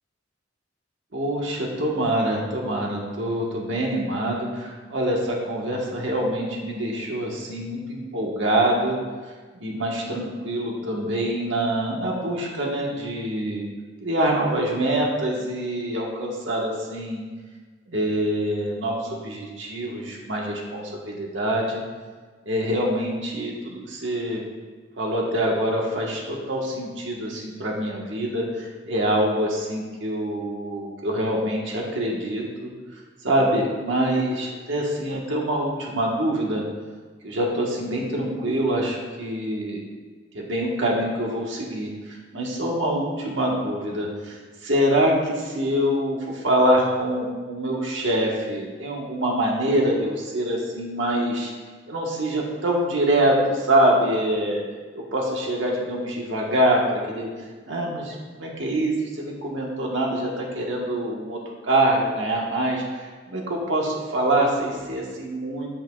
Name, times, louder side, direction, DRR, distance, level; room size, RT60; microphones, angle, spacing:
voice 1, 1.1-9.0 9.5-13.6 14.0-17.2 17.9-21.8 22.4-24.4 25.0-32.7 33.2-36.6 37.2-39.8 40.3-51.5 51.9-54.6 54.9-57.3 57.7-65.8, right 1 dB, 80° right, -2 dB, 1.4 m, -25 dB
8.9 x 8.6 x 2.4 m, 1.4 s
head